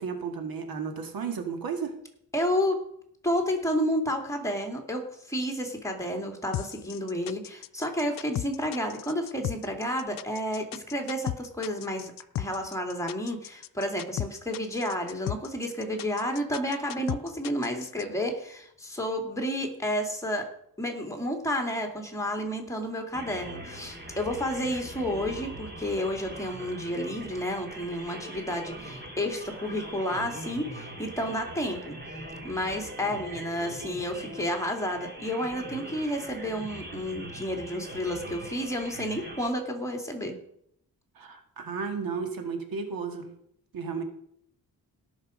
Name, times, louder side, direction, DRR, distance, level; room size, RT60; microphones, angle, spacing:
voice 1, 0.0-1.9 41.2-43.3 43.7-44.0, right 5 dB, 75° right, 6 dB, 2.0 m, -33 dB
voice 2, 2.3-2.8 3.2-12.1 12.4-20.5 20.8-32.0 32.4-40.4, equal, 10° left, 2 dB, 2.7 m, -31 dB
sound 1, 6.5-18.0, left 14 dB, 65° left, 0.5 m, -35 dB
sound 2, 23.1-39.5, right 1 dB, 30° right, 2.9 m, -42 dB
17.5 x 6.5 x 5.1 m, 0.71 s
cardioid pair, 90°, 36 cm